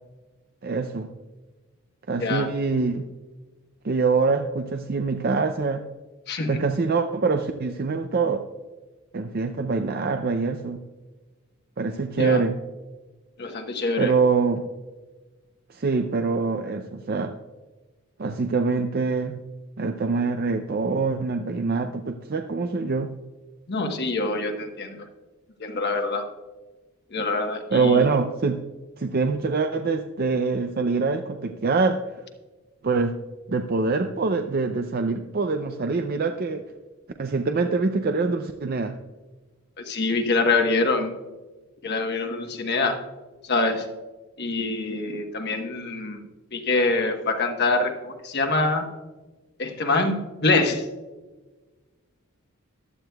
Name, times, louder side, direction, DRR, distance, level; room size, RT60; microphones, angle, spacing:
voice 1, 0.6-1.1 2.1-3.1 3.8-5.8 6.5-8.4 9.1-10.8 11.8-12.5 14.0-14.7 15.7-17.3 18.2-19.4 19.8-23.1 27.7-28.6 29.0-32.0 32.8-33.1 33.5-36.6 37.2-39.0, right 4 dB, 45° right, 6 dB, 0.5 m, -24 dB
voice 2, 2.2-2.5 6.3-6.6 12.1-12.4 13.4-14.1 23.7-25.0 25.6-26.2 27.1-28.0 39.9-41.1 41.8-43.0 43.4-43.9 44.4-46.3 46.5-48.9 49.6-50.9, left 3 dB, 50° left, 4 dB, 1.2 m, -25 dB
15.0 x 11.0 x 2.3 m, 1.2 s
head